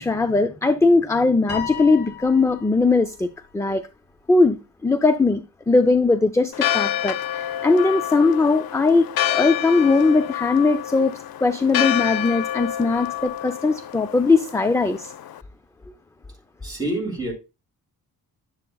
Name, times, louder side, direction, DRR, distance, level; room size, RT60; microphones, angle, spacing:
voice 1, 0.0-3.8 4.3-4.6 4.8-11.1 11.4-15.1, left 3 dB, 10° left, 0.4 m, -19 dB
Piano, 1.5-3.0, left 8 dB, 25° left, 3.8 m, -34 dB
Church bell, 6.5-15.4, left 12 dB, 75° left, 0.5 m, -28 dB
voice 2, 16.6-17.3, right 1 dB, 10° right, 4.9 m, -27 dB
11.0 x 7.7 x 2.3 m
cardioid pair, 110°, 37 cm